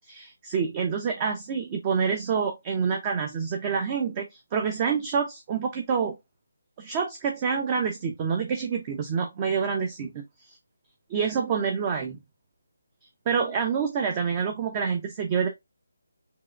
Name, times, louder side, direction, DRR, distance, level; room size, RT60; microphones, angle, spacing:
voice 1, 0.1-6.2 6.8-10.2 11.1-12.2 13.3-15.5, right 6 dB, 25° right, 0.7 m, -27 dB
4.7 x 3.1 x 2.4 m
figure-of-eight pair, 155°, 0 cm